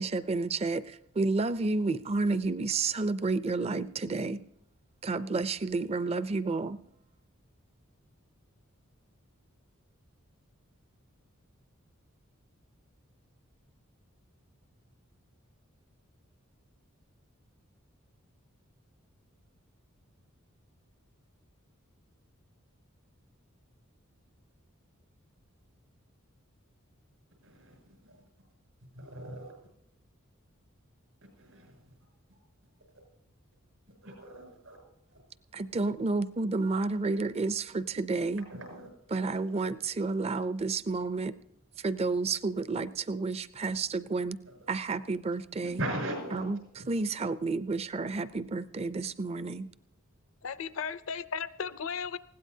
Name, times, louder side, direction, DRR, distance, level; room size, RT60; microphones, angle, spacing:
voice 1, 0.0-4.4 5.0-6.8 35.5-38.5 39.1-41.3 41.8-44.4 44.7-45.8 46.3-46.6 46.9-49.7, right 3 dB, 30° right, 0.5 m, -30 dB
voice 2, 27.4-27.7 28.0-28.2 28.9-29.5 31.4-31.7 34.0-34.8 38.5-38.9 45.6-46.4 46.8-46.9, right 1 dB, 80° right, 6.6 m, -38 dB
voice 3, 50.4-52.2, left 6 dB, 65° left, 0.6 m, -35 dB
20.5 x 16.5 x 2.8 m
head